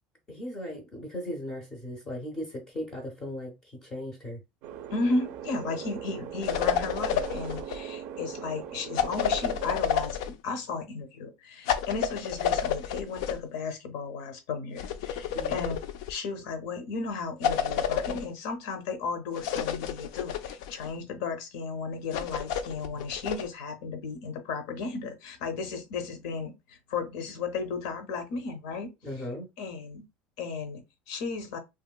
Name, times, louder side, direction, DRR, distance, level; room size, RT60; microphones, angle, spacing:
voice 1, 0.3-4.4 15.3-15.7 29.0-29.5, left 1 dB, 20° left, 0.5 m, -37 dB
sound 1, 4.6-9.7, right 9 dB, 50° right, 0.4 m, -40 dB
voice 2, 4.9-10.2 10.4-15.8 16.1-28.9 29.6-30.0 30.4-31.6, left 4 dB, 75° left, 0.8 m, -34 dB
sound 2, 6.4-7.8 9.0-10.4 11.7-13.4 14.8-16.1 17.4-18.3 19.4-20.9 22.1-23.5, left 8 dB, 90° left, 0.4 m, -30 dB
2.9 x 2.8 x 2.3 m
cardioid pair, 180°, 3 cm